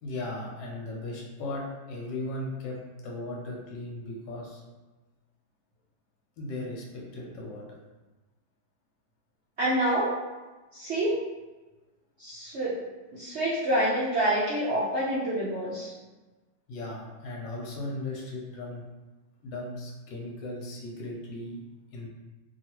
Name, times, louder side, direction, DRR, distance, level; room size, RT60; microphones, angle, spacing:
voice 1, 0.0-2.8 3.0-4.6 6.4-7.6 16.7-18.8 19.4-21.6 21.9-22.1, left 2 dB, 75° left, -2 dB, 1.4 m, -37 dB
voice 2, 9.6-10.1 10.7-11.2 12.2-12.8 13.1-15.9, right 1 dB, 80° right, -8 dB, 0.6 m, -27 dB
3.0 x 2.8 x 2.9 m, 1.2 s
omnidirectional pair, 2.0 m